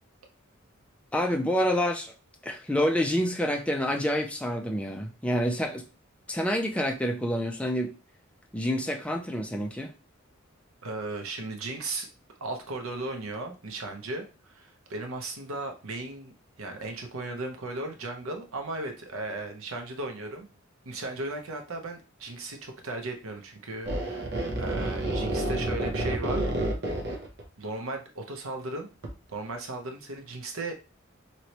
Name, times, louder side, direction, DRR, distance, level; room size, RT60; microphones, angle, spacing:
voice 1, 1.1-2.1 2.4-5.8 6.3-7.9 8.5-9.9, equal, 5° left, 0.4 m, -27 dB
voice 2, 10.8-12.1 12.4-16.3 16.6-20.5 20.8-24.3 24.6-26.5 27.6-28.9 29.3-30.7, right 2 dB, 85° right, 0.8 m, -36 dB
sound 1, 23.8-27.4 29.0-29.1, right 1 dB, 55° right, 0.8 m, -29 dB
3.0 x 3.0 x 2.9 m
head